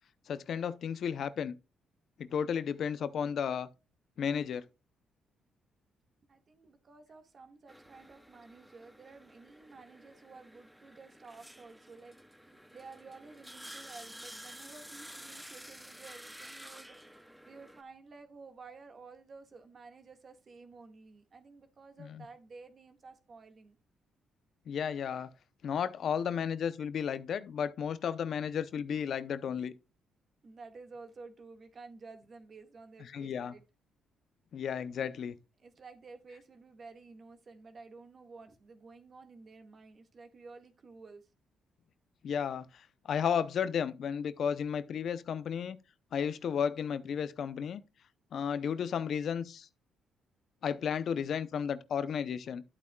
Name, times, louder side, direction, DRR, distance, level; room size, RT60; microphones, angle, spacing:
voice 1, 0.3-1.5 2.2-3.7 4.2-4.7 22.2-22.3 24.7-25.3 25.6-29.7 33.1-33.5 34.5-35.4 42.2-45.8 46.1-47.8 48.3-49.7 50.6-52.6, left 7 dB, 60° left, 0.6 m, -33 dB
voice 2, 6.3-12.2 12.4-23.8 30.4-33.6 35.6-41.3, right 4 dB, 45° right, 1.6 m, -52 dB
sound 1, 7.7-17.8, equal, 5° right, 0.6 m, -51 dB
11.0 x 8.3 x 2.3 m
cardioid pair, 90°, 0 cm